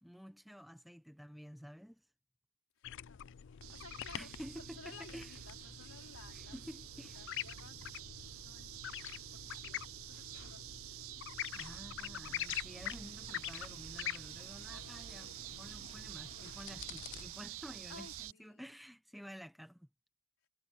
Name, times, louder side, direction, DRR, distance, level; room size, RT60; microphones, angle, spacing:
voice 1, 0.0-2.0 4.1-5.4 6.3-7.3 11.5-19.9, equal, ahead, 0.9 m, -51 dB
voice 2, 2.8-6.6 7.1-11.1 17.9-18.6, left 4 dB, 80° left, 4.1 m, -57 dB
sound 1, 2.8-17.3, left 12 dB, 60° left, 0.4 m, -46 dB
sound 2, 3.6-18.3, right 13 dB, 70° right, 0.5 m, -49 dB
Stream, 12.4-18.3, right 6 dB, 30° right, 1.4 m, -61 dB
head